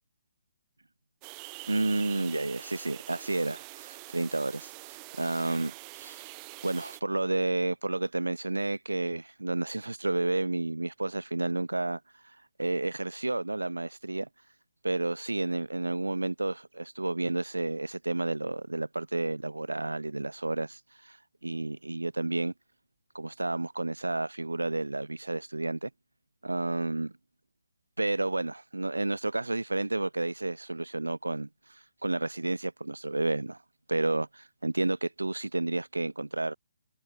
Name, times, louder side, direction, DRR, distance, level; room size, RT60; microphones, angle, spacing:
sound 1, 1.2-7.0, right 37 dB, 25° right, 1.1 m, -45 dB
voice 1, 1.7-4.7 5.2-6.2 6.6-12.0 12.6-14.3 14.8-21.2 21.4-22.5 23.1-25.9 26.4-27.1 28.0-33.6 33.9-36.5, right 2 dB, 75° right, 2.1 m, -31 dB
figure-of-eight pair, 135°, 0 cm